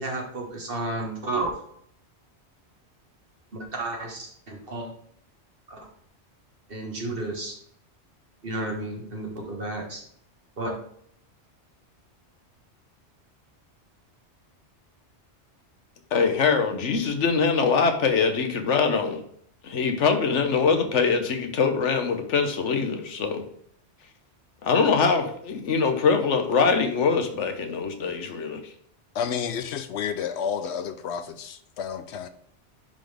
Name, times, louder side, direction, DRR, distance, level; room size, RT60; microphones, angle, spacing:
voice 1, 0.0-1.5 3.5-4.9 5.7-5.8 6.7-7.5 8.4-10.0 10.6-10.8, right 2 dB, 50° right, 0 dB, 1.8 m, -32 dB
voice 2, 16.1-19.2 19.6-23.4 24.6-28.6, left 5 dB, 90° left, 7 dB, 1.3 m, -23 dB
voice 3, 29.1-32.3, left 7 dB, 75° left, 10 dB, 0.9 m, -30 dB
10.5 x 3.9 x 3.4 m, 0.66 s
omnidirectional pair, 1.2 m